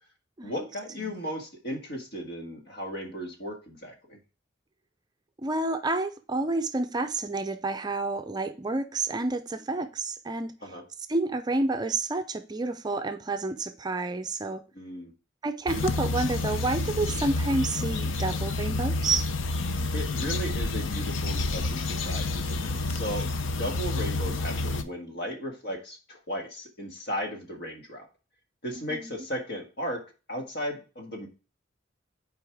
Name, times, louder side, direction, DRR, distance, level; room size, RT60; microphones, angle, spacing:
voice 1, 0.4-4.2 10.6-10.8 14.7-15.1 19.9-23.3 23.6-28.1 28.6-30.0 30.3-31.3, equal, 60° left, 1.7 m, -35 dB
voice 2, 5.4-10.5 11.1-14.6 15.4-19.3 28.9-29.2, right 2 dB, 20° right, 0.5 m, -29 dB
sound 1, 15.7-24.8, left 2 dB, 85° left, 0.7 m, -29 dB
8.0 x 4.7 x 3.5 m
head